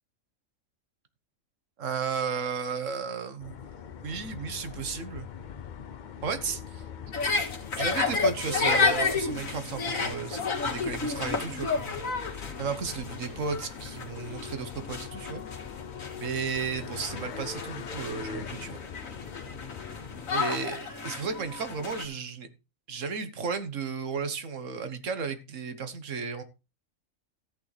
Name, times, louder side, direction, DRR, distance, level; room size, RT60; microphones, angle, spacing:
voice 1, 1.8-3.6 4.0-5.3 6.2-6.8 7.8-12.1 12.6-15.4 16.2-18.8 20.3-22.5 22.9-26.4, right 5 dB, 70° right, 10 dB, 1.5 m, -34 dB
sound 1, 3.4-20.4, left 7 dB, 50° left, 0.6 m, -42 dB
sound 2, 7.1-22.0, left 4 dB, 85° left, 2.2 m, -31 dB
13.5 x 8.7 x 3.3 m, 0.29 s
omnidirectional pair, 1.4 m